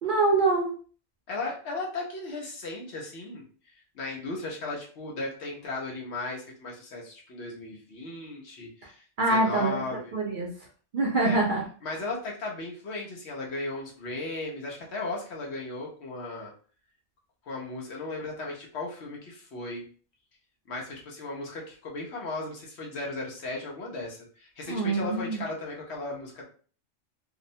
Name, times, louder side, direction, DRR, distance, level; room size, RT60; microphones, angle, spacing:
voice 1, 0.0-0.7 9.2-9.8 10.1-10.5 10.9-11.6 24.7-25.4, right 3 dB, 55° right, -2 dB, 0.6 m, -24 dB
voice 2, 1.3-3.4 3.9-10.1 11.2-11.4 11.8-16.5 17.5-19.8 20.7-26.4, left 2 dB, 65° left, -2 dB, 1.0 m, -36 dB
2.7 x 2.0 x 2.6 m, 0.42 s
omnidirectional pair, 1.2 m